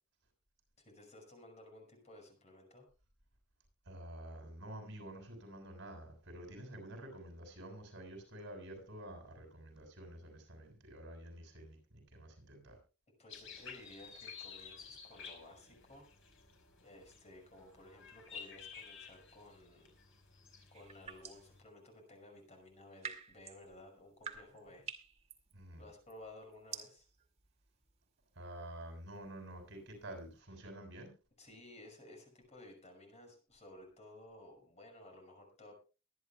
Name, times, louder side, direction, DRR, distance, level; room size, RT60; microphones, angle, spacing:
voice 1, 0.8-2.9 13.2-16.1 16.8-19.9 20.7-24.9 25.8-27.1 31.4-35.7, left 1 dB, 35° left, 3 dB, 5.7 m, -56 dB
voice 2, 3.8-12.8 25.5-25.8 28.3-31.1, right 1 dB, 60° right, 3 dB, 6.6 m, -49 dB
sound 1, 13.3-21.6, left 6 dB, 65° left, 4.9 m, -53 dB
sound 2, 20.7-21.5 22.6-30.3, right 6 dB, 30° right, 2.2 m, -51 dB
23.5 x 10.5 x 2.3 m, 0.32 s
head